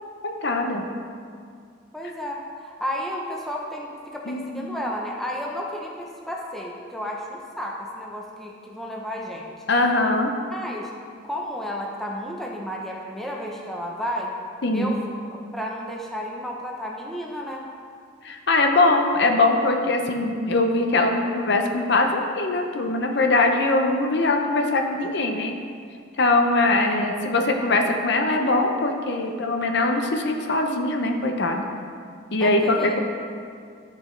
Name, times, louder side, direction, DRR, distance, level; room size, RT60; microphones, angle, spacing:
voice 1, 0.2-0.9 4.3-4.7 9.7-10.3 14.6-14.9 18.2-25.5 26.2-31.7 32.3-33.0, left 2 dB, 55° left, 3 dB, 0.7 m, -22 dB
voice 2, 1.9-9.5 10.5-10.9 11.2-14.3 14.7-15.0 15.3-17.7 32.4-33.0, equal, ahead, -2 dB, 0.7 m, -32 dB
13.5 x 5.2 x 3.2 m, 2.2 s
head